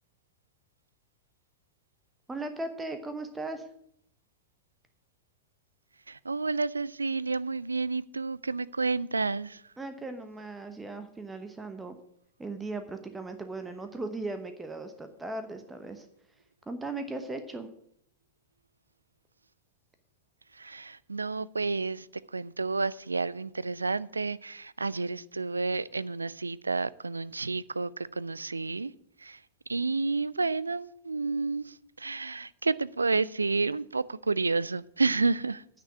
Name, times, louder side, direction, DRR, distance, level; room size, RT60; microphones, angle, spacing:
voice 1, 2.3-3.7 9.8-12.0 12.4-16.1 16.7-17.7, right 2 dB, 10° right, 1.0 m, -37 dB
voice 2, 6.1-9.6 20.5-22.1 22.3-28.9 29.2-29.4 29.7-35.6, right 3 dB, 80° right, 0.3 m, -30 dB
9.7 x 6.0 x 8.3 m
figure-of-eight pair, 90°, 0 cm